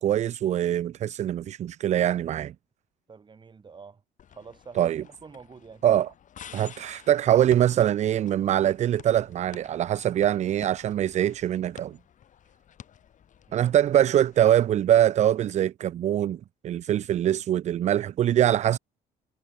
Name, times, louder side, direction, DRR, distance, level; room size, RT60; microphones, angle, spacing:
voice 1, 0.0-2.5 4.8-5.0 5.8-6.1 6.5-12.0 13.5-18.8, right 11 dB, 45° right, 0.4 m, -23 dB
voice 2, 3.1-4.0 4.3-5.8 13.5-13.7, right 5 dB, 30° right, 2.0 m, -47 dB
sound 1, 4.2-14.7, left 9 dB, 50° left, 2.0 m, -51 dB
cardioid pair, 110°, 17 cm